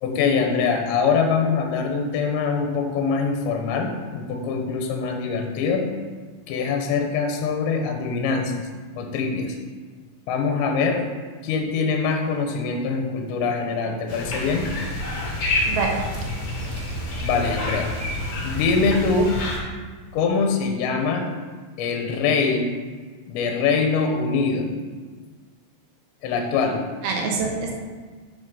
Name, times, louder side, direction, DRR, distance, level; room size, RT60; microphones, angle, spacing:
voice 1, 0.0-5.9 6.5-8.7 9.0-9.6 10.3-11.0 11.4-14.7 17.2-17.9 18.4-19.3 20.1-21.2 21.8-22.7 23.3-24.7 26.2-26.8, left 5 dB, 75° left, 3 dB, 2.9 m, -23 dB
sound 1, 14.1-19.6, left 1 dB, 55° left, 2.2 m, -28 dB
voice 2, 15.6-16.2 16.6-16.8 27.0-27.7, right 4 dB, 75° right, 0 dB, 2.4 m, -26 dB
7.2 x 5.8 x 5.4 m, 1.5 s
omnidirectional pair, 5.7 m